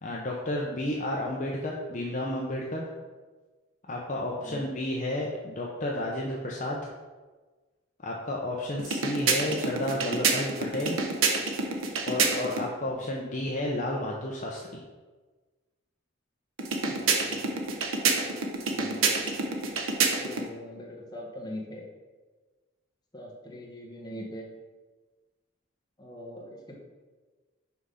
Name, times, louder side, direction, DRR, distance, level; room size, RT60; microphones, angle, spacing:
voice 1, 0.0-2.9 3.9-6.8 8.0-11.0 12.1-14.8, left 1 dB, 40° left, -2 dB, 0.7 m, -31 dB
sound 1, 8.8-12.7 16.6-20.5, right 4 dB, 80° right, 1.0 m, -28 dB
voice 2, 16.8-17.7 18.2-18.4 18.7-19.1 20.2-21.9 23.1-24.5 26.0-26.8, left 1 dB, 20° left, -2 dB, 1.4 m, -42 dB
6.0 x 5.0 x 5.6 m, 1.3 s
head